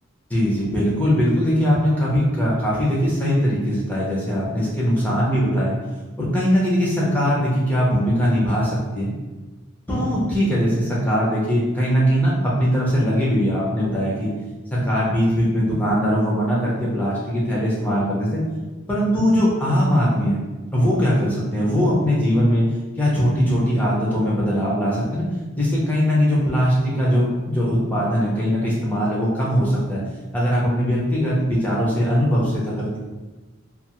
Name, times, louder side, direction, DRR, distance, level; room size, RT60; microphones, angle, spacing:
voice 1, 0.3-5.8 6.2-9.1 9.9-14.3 14.7-18.4 18.9-20.4 20.7-22.7 23.0-25.2 25.6-30.0 30.3-33.0, equal, 10° left, -6 dB, 0.6 m, -20 dB
2.4 x 2.4 x 2.9 m, 1.2 s
head